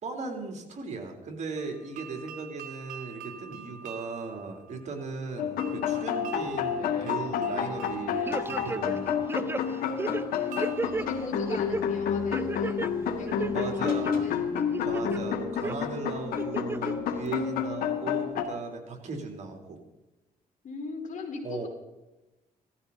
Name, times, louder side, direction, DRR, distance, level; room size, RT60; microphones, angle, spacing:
voice 1, 0.0-9.2 13.5-14.2 14.8-19.8 21.4-21.7, right 4 dB, 50° right, 3 dB, 3.5 m, -37 dB
sound 1, 1.6-12.4, right 7 dB, 65° right, 2.4 m, -47 dB
sound 2, 5.4-18.5, left 7 dB, 85° left, 1.9 m, -30 dB
sound 3, 8.3-9.0 9.3-11.1 11.5-11.8 12.3-12.9 13.3-14.1 14.5-15.2 15.6-15.8 16.4-16.9 17.3-17.4, right 3 dB, 15° right, 0.5 m, -33 dB
voice 2, 10.4-12.9 13.2-14.4 20.6-21.7, left 4 dB, 60° left, 2 dB, 4.5 m, -40 dB
17.5 x 14.0 x 4.2 m, 1.0 s
cardioid pair, 90°, 15 cm